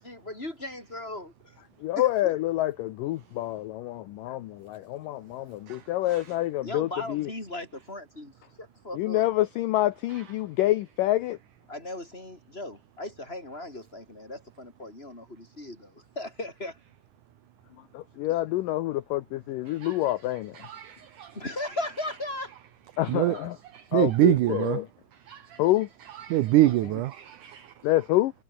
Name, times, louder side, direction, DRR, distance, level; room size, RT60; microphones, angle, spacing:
voice 1, 0.0-1.6 2.0-2.3 6.6-8.3 8.6-9.2 11.7-16.8 21.3-22.5, left 1 dB, 15° left, 5.5 m, -37 dB
voice 2, 1.8-7.3 8.9-11.4 17.9-20.7 23.0-23.6 23.9-24.9 25.6-25.9 26.6-26.7 27.8-28.3, left 15 dB, 80° left, 2.0 m, -27 dB
voice 3, 20.6-21.3 23.1-23.4 23.7-24.8 25.3-25.6 26.2-27.7, right 15 dB, 80° right, 1.8 m, -25 dB
omnidirectional pair, 4.7 m